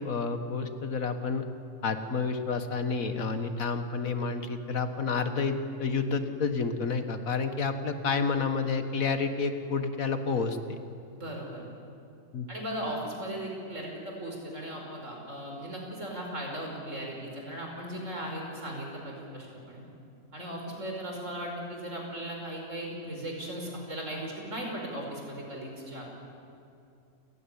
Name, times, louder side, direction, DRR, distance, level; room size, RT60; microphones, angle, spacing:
voice 1, 0.0-1.5 1.8-10.8 12.3-12.5, left 4 dB, 75° left, 8 dB, 1.9 m, -30 dB
voice 2, 11.1-11.7 12.5-19.8 20.3-26.0, right 1 dB, 60° right, 0 dB, 5.3 m, -37 dB
28.5 x 15.0 x 10.0 m, 2.5 s
omnidirectional pair, 1.5 m